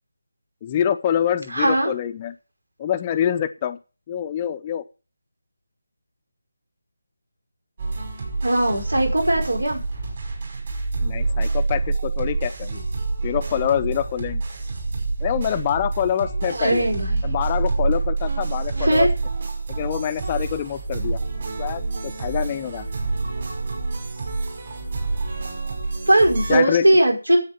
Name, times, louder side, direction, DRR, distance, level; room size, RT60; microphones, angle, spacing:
voice 1, 0.6-2.3 2.8-3.8 4.1-4.8 11.0-12.9 13.2-14.4 15.2-16.9 17.2-19.1 19.7-21.2 21.6-22.8 26.5-26.8, left 9 dB, 20° left, 11 dB, 0.7 m, -25 dB
voice 2, 1.5-1.9 8.4-9.8 16.5-17.2 18.8-19.1 26.1-27.4, right 1 dB, 75° right, 3 dB, 5.5 m, -19 dB
sound 1, 7.8-26.6, right 3 dB, 40° right, 5.5 m, -27 dB
9.9 x 8.8 x 8.2 m, 0.34 s
figure-of-eight pair, 155°, 0 cm